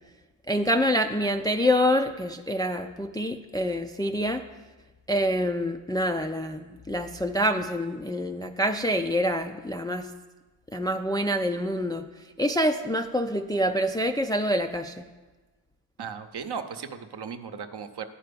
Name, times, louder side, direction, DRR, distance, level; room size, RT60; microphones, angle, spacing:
voice 1, 0.5-4.4 5.1-10.1 10.7-12.0 12.4-15.0, equal, 10° left, 4 dB, 0.4 m, -26 dB
voice 2, 16.0-18.0, right 6 dB, 55° right, 7 dB, 0.8 m, -36 dB
9.5 x 4.5 x 6.8 m, 1.2 s
cardioid pair, 65°, 48 cm